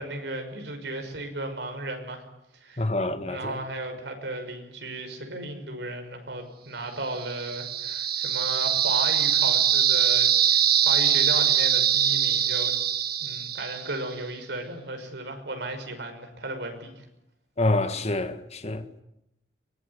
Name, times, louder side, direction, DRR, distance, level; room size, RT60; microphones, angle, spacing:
voice 1, 0.0-2.2 2.5-2.9 3.2-12.7 13.2-17.0, right 2 dB, 80° right, 6.0 m, -35 dB
voice 2, 2.8-3.6 17.6-18.9, left 2 dB, 40° left, 1.8 m, -27 dB
sound 1, 7.2-14.1, right 9 dB, 60° right, 1.9 m, -23 dB
23.5 x 21.5 x 9.9 m
head